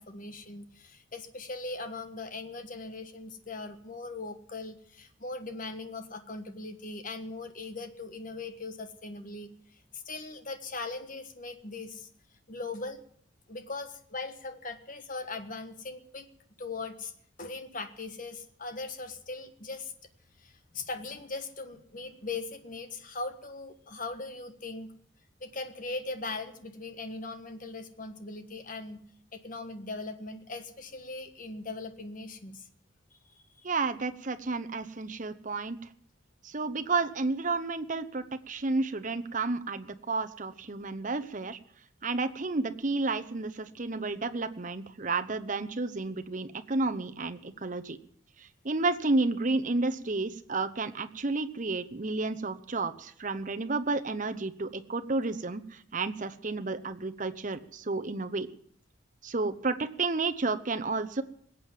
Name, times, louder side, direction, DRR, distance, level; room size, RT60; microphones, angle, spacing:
voice 1, 0.0-12.1 12.5-13.0 13.5-16.3 16.6-17.1 17.4-19.9 20.4-24.9 25.4-29.0 29.3-32.7 33.3-33.7, left 3 dB, 40° left, 8 dB, 1.4 m, -40 dB
voice 2, 33.6-35.8 36.4-41.6 42.0-48.0 48.4-58.5 59.2-61.2, right 3 dB, 40° right, 9 dB, 0.8 m, -31 dB
20.5 x 8.5 x 7.5 m, 0.64 s
head